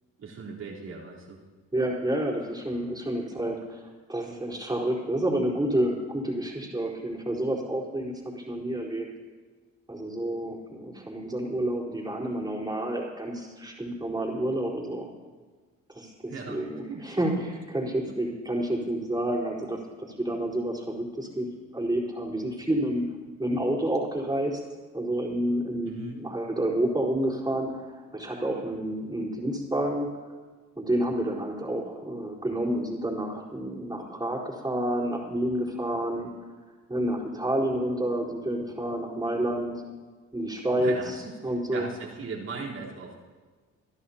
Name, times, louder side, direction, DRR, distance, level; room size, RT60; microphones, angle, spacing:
voice 1, 0.2-1.4 16.3-16.6 16.9-17.0 25.8-26.2 40.8-41.3 41.7-43.2, right 4 dB, 60° right, -6 dB, 4.0 m, -38 dB
voice 2, 1.7-9.1 9.9-15.1 15.9-23.0 23.4-24.6 24.9-30.1 30.8-36.3 36.9-39.7 40.3-41.2 41.4-41.9, right 1 dB, 15° right, -4 dB, 4.3 m, -29 dB
27.0 x 11.0 x 2.9 m, 1.4 s
cardioid pair, 90°, 30 cm